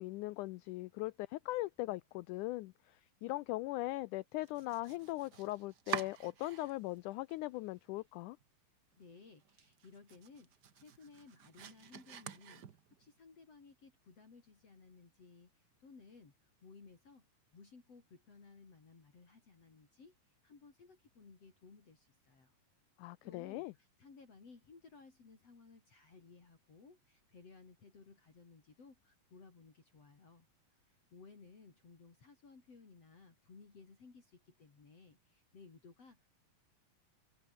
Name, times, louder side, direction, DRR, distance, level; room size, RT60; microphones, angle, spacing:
voice 1, 0.0-8.4 23.0-23.7, left 19 dB, 80° left, 1.8 m, -40 dB
Domestic sounds home sounds, 4.4-7.0 7.3-8.0 8.4-8.5 8.9-9.0 9.4-13.1, right 8 dB, 70° right, 1.0 m, -47 dB
voice 2, 9.0-12.7 13.0-16.3 16.6-17.3 17.5-22.5 23.2-36.3, left 4 dB, 45° left, 5.3 m, -59 dB
open air
omnidirectional pair, 4.0 m